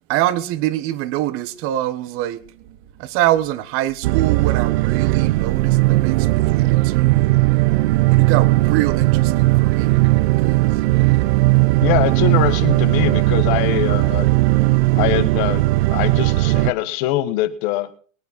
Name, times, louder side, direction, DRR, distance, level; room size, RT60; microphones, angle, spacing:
voice 1, 0.1-7.2 8.1-10.0 10.4-10.8, right 14 dB, 35° right, 1.2 m, -25 dB
sound 1, 4.0-16.7, right 20 dB, 55° right, 0.5 m, -17 dB
voice 2, 11.8-14.3 14.9-15.6 15.9-17.9, left 15 dB, 40° left, 1.4 m, -22 dB
22.5 x 9.2 x 4.2 m
hypercardioid pair, 140°, 39 cm